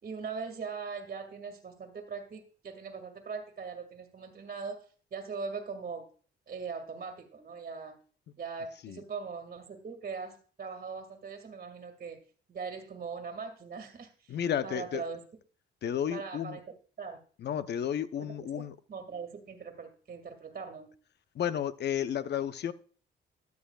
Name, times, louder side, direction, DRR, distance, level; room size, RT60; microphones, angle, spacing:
voice 1, 0.0-6.1 6.5-8.0 8.4-12.2 12.5-14.4 14.6-15.2 16.1-16.6 17.0-17.2 18.2-20.9, right 5 dB, 45° right, 2 dB, 1.9 m, -41 dB
voice 2, 14.3-15.0 15.8-16.6 17.4-18.8 21.3-22.7, left 9 dB, 60° left, 13 dB, 0.7 m, -32 dB
13.5 x 9.5 x 2.3 m, 0.40 s
cardioid pair, 90°, 20 cm